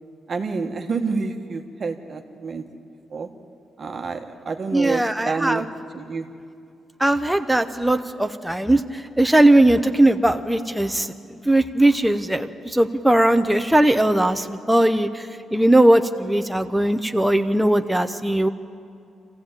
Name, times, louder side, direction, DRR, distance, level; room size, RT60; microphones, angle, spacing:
voice 1, 0.3-2.6 3.1-3.3 3.8-5.7 5.9-6.3, right 4 dB, 35° right, 5 dB, 1.4 m, -28 dB
voice 2, 4.7-5.6 7.0-11.1 11.4-18.5, right 1 dB, 5° right, 7 dB, 0.7 m, -19 dB
25.5 x 15.5 x 9.0 m, 2.4 s
cardioid pair, 155°, 0 cm